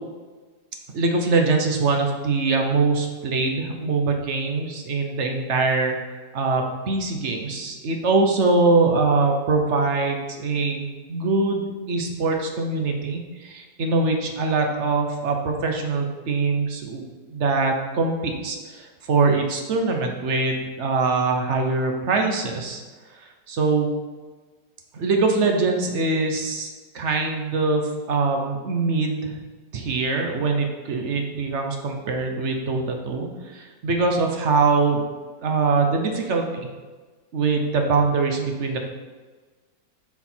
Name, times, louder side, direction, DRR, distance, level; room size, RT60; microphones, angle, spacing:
voice 1, 0.9-5.9 6.3-17.0 17.3-22.8 23.2-23.9 24.9-26.7 26.9-29.3 29.7-35.0 35.4-36.7 37.3-38.8, right 3 dB, 50° right, 3 dB, 0.9 m, -23 dB
7.1 x 4.8 x 4.4 m, 1.3 s
omnidirectional pair, 2.0 m